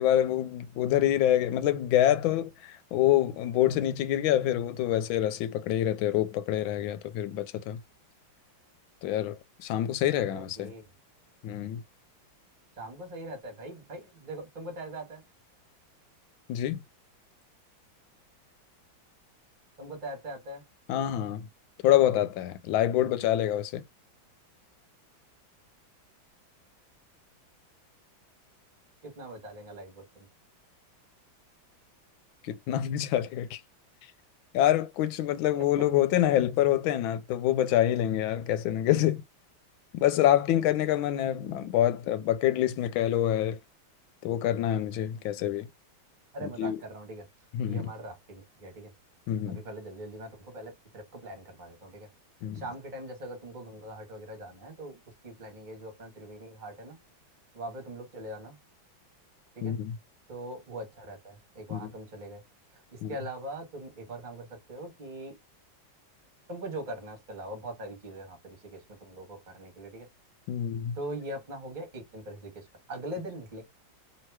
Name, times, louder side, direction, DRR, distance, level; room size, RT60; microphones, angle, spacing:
voice 1, 0.0-7.8 9.0-10.7 11.4-11.8 16.5-16.8 20.9-21.5 21.8-23.8 32.4-33.6 34.5-39.2 39.9-43.6 44.2-45.7 46.4-46.8 47.5-47.9 49.3-49.6 52.4-52.6 59.6-60.0 61.7-61.9 63.0-63.2 70.5-71.0, left 12 dB, 85° left, 1.4 m, -26 dB
voice 2, 10.3-10.8 12.8-15.2 19.8-20.6 29.0-30.3 35.5-35.9 45.1-45.2 46.3-47.3 47.6-48.9 49.5-52.1 52.5-57.0 57.5-58.6 59.5-59.7 60.3-62.4 62.7-65.3 66.5-70.1 71.0-73.6, right 1 dB, 25° right, 1.3 m, -41 dB
3.1 x 2.9 x 4.6 m
omnidirectional pair, 2.1 m